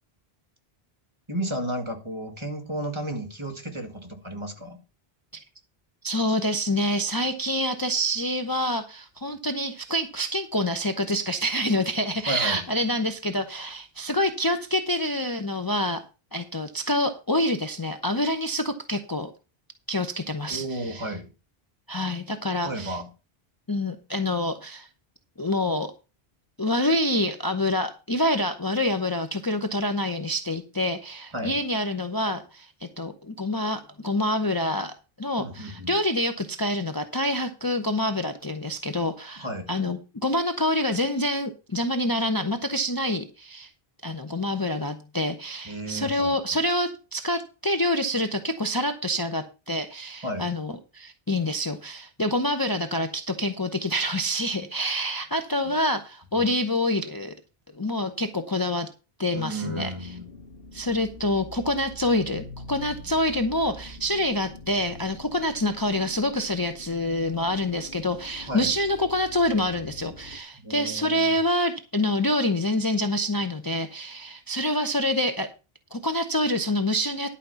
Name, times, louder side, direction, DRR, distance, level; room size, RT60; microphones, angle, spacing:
voice 1, 1.3-4.8 12.2-12.6 20.5-21.3 22.6-23.1 31.3-31.6 35.4-36.0 39.4-39.7 45.7-46.6 50.2-50.5 55.6-55.7 56.3-56.5 59.3-60.2 68.5-68.7 70.5-71.4, right 1 dB, 30° right, 2.0 m, -33 dB
voice 2, 6.0-16.0 16.3-19.3 19.9-21.1 21.9-23.0 23.7-24.9 25.4-25.9 26.6-43.7 44.0-57.3 57.7-58.9 59.2-60.1 60.7-75.5 75.9-77.3, left 1 dB, 25° left, 0.8 m, -27 dB
sound 1, 59.7-70.4, left 1 dB, 65° left, 1.8 m, -44 dB
11.5 x 5.1 x 6.9 m
omnidirectional pair, 1.0 m